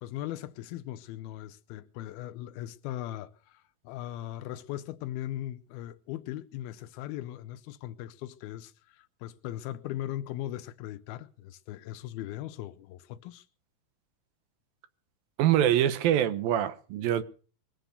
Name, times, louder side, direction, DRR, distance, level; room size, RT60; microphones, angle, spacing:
voice 1, 0.0-13.5, left 13 dB, 80° left, 2.7 m, -39 dB
voice 2, 15.4-17.2, right 11 dB, 75° right, 2.8 m, -24 dB
22.5 x 7.6 x 6.7 m
omnidirectional pair, 4.4 m